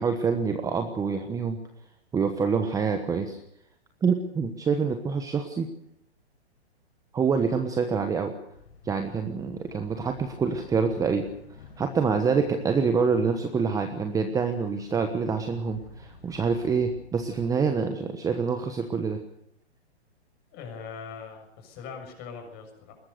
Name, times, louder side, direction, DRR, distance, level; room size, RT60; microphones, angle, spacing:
voice 1, 0.0-1.6 2.1-3.4 4.0-5.7 7.1-8.3 8.8-11.3 11.8-19.2, right 5 dB, 10° right, 7 dB, 1.2 m, -26 dB
sound 1, 8.5-17.6, left 5 dB, 60° left, 6.9 m, -49 dB
voice 2, 20.5-23.0, left 6 dB, 30° left, 5 dB, 6.8 m, -41 dB
21.5 x 19.0 x 6.8 m, 0.76 s
hypercardioid pair, 140°, 34 cm